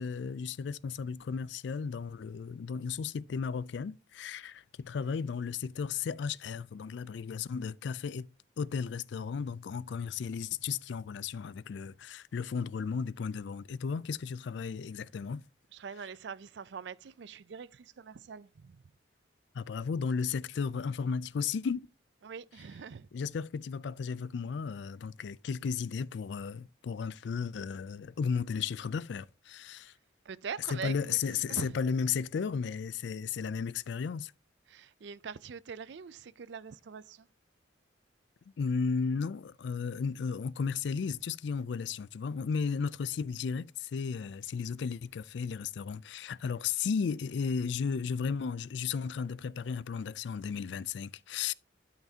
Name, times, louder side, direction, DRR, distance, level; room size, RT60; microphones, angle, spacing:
voice 1, 0.0-8.3 8.6-15.4 19.5-21.9 23.1-29.9 30.7-34.3 38.6-51.5, left 6 dB, 65° left, 0.3 m, -34 dB
voice 2, 15.7-18.8 22.2-23.1 30.3-31.2 31.5-31.8 34.7-37.3, right 6 dB, 60° right, 0.4 m, -43 dB
12.0 x 5.8 x 2.8 m
head